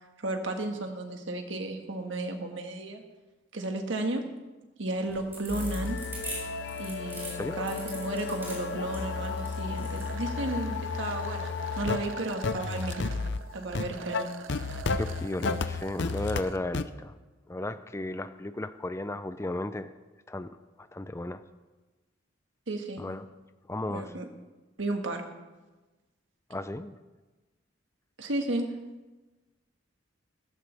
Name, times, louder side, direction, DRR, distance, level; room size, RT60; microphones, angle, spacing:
voice 1, 0.2-3.0 3.5-4.2 4.8-6.0 6.8-13.2 13.5-14.3 22.7-23.0 23.9-24.3 24.8-25.2 28.2-28.7, right 2 dB, 70° right, 4 dB, 1.6 m, -33 dB
sound 1, 5.0-10.1, right 2 dB, 10° right, 5.7 m, -41 dB
sound 2, 5.5-16.4 16.7-16.8, left 4 dB, 60° left, 0.6 m, -33 dB
voice 2, 7.3-7.6 14.9-17.1 17.5-19.9 20.3-20.5 20.9-21.4 23.0-23.2 23.7-24.1 26.5-26.9, left 2 dB, 15° left, 11 dB, 0.4 m, -34 dB
sound 3, 9.9-16.6, right 6 dB, 90° right, 0.7 m, -45 dB
16.0 x 14.5 x 3.4 m, 1.2 s
head